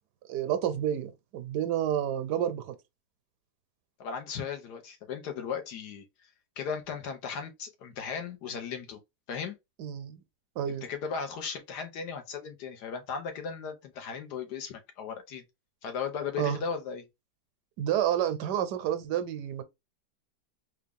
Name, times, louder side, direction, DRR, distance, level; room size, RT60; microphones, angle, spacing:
voice 1, 0.3-2.8 9.8-10.2 10.6-10.8 16.4-16.6 17.8-19.6, right 10 dB, 80° right, 1.1 m, -29 dB
voice 2, 4.0-6.0 6.6-9.0 9.3-9.5 10.8-15.4 15.8-17.0, left 6 dB, 75° left, 1.4 m, -36 dB
3.6 x 2.4 x 3.3 m
omnidirectional pair, 1.8 m